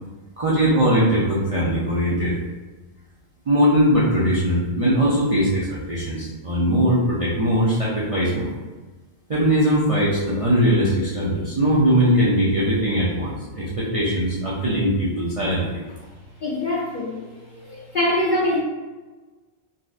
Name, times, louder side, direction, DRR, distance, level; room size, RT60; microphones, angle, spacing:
voice 1, 0.4-2.4 3.5-8.5 9.3-15.6, equal, 50° right, -7 dB, 0.4 m, -20 dB
voice 2, 16.4-17.2 17.5-18.6, left 1 dB, 50° left, -5 dB, 0.6 m, -23 dB
4.0 x 2.4 x 2.4 m, 1.3 s
omnidirectional pair, 1.3 m